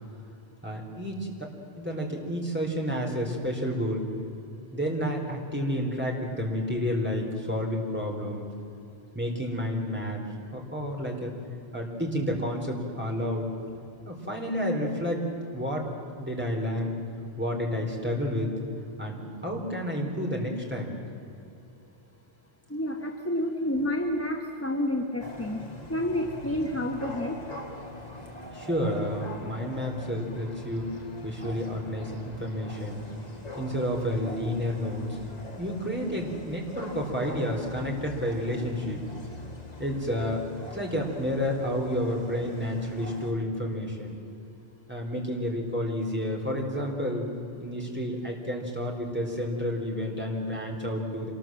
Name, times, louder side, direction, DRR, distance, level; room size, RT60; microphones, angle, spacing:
voice 1, 0.6-1.3 1.8-4.0 4.7-8.5 9.1-10.2 10.5-11.3 11.7-13.5 14.0-15.2 15.5-15.8 16.2-16.9 17.4-18.5 19.0-20.9 28.5-30.9 31.2-33.0 33.6-35.2 35.6-39.0 39.8-40.4 40.7-44.1 44.9-47.3 47.6-51.3, equal, 10° right, -1 dB, 3.9 m, -30 dB
voice 2, 22.7-25.6 25.9-27.4, left 1 dB, 15° left, 2 dB, 1.4 m, -29 dB
sound 1, 25.2-43.3, left 1 dB, 40° left, 1.9 m, -43 dB
26.0 x 19.5 x 7.7 m, 2.7 s
omnidirectional pair, 1.0 m